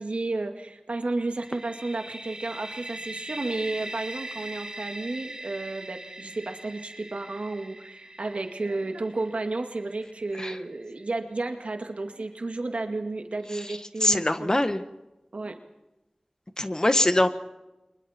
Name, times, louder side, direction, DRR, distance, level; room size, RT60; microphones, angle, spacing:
voice 1, 0.0-14.6 15.3-15.6, right 2 dB, 80° right, 5 dB, 2.1 m, -32 dB
sound 1, 1.4-11.1, right 1 dB, 40° right, 2.8 m, -41 dB
voice 2, 14.0-14.8 16.6-17.3, left 1 dB, 35° left, 10 dB, 1.4 m, -22 dB
29.5 x 24.0 x 4.4 m, 1.0 s
wide cardioid pair, 50°, 2 cm